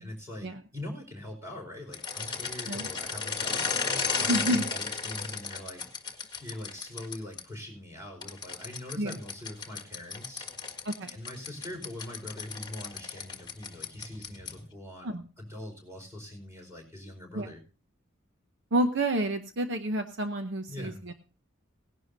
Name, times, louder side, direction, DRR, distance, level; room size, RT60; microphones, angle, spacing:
voice 1, 0.0-3.8 4.2-5.8 6.4-10.5 11.1-17.6 20.7-21.0, left 1 dB, 15° right, 2 dB, 4.7 m, -42 dB
sound 1, 1.9-7.4 8.2-14.7, left 5 dB, 20° left, 1.6 m, -34 dB
voice 2, 4.3-4.7 9.0-9.1 10.8-11.1 15.0-15.2 17.3-17.5 18.7-21.1, right 1 dB, 55° right, 7 dB, 0.8 m, -29 dB
18.0 x 11.0 x 2.7 m, 0.34 s
head